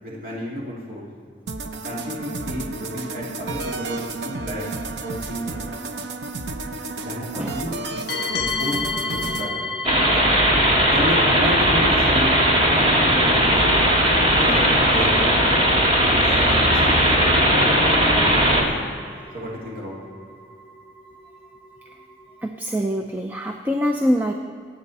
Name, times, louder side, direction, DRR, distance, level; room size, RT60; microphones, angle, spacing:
voice 1, 0.0-1.0 1.8-4.6 5.0-5.7 7.0-7.8 8.3-9.7 10.1-10.4 10.9-12.4 12.7-13.8 14.2-15.6 16.4-17.2 18.5-18.7 19.3-20.0, left 1 dB, 55° right, -5 dB, 2.8 m, -32 dB
sound 1, 1.5-9.5, right 3 dB, 80° right, 0.8 m, -32 dB
sound 2, 8.1-22.4, left 3 dB, 60° left, 1.1 m, -34 dB
sound 3, 9.8-18.6, equal, 35° right, 2.3 m, -18 dB
voice 2, 22.4-24.3, equal, 10° right, 3 dB, 0.6 m, -24 dB
25.5 x 8.8 x 4.2 m, 2.3 s
head